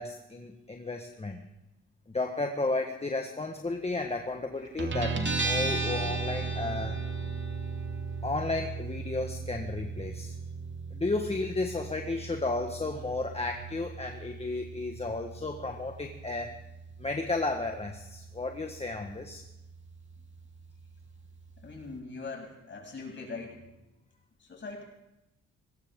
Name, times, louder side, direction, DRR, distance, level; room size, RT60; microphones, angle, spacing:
voice 1, 0.0-1.4 2.1-7.0 8.2-10.3 10.9-16.5 17.0-19.4, left 3 dB, 20° left, 3 dB, 1.4 m, -33 dB
Guitar, 4.8-22.0, right 4 dB, 40° right, 2.3 m, -37 dB
voice 2, 21.6-23.6 24.5-24.8, left 4 dB, 40° left, -1 dB, 7.2 m, -41 dB
21.0 x 18.0 x 3.7 m, 0.94 s
cardioid pair, 90°, 30 cm